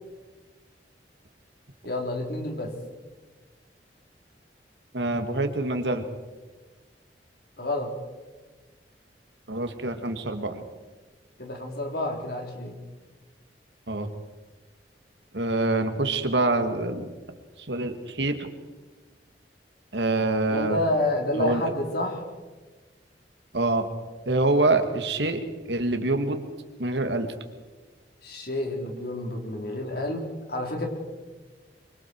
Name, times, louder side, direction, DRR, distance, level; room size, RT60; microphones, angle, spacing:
voice 1, 1.8-2.7 7.6-7.9 11.4-12.8 20.5-22.2 28.2-30.9, left 1 dB, 60° left, 2 dB, 4.1 m, -29 dB
voice 2, 4.9-6.1 9.5-10.6 13.9-14.1 15.3-17.1 17.7-18.5 19.9-20.8 21.4-21.6 23.5-23.9 24.3-26.4 26.8-27.3, right 2 dB, 80° right, 7 dB, 2.1 m, -25 dB
24.5 x 24.0 x 4.7 m, 1.3 s
head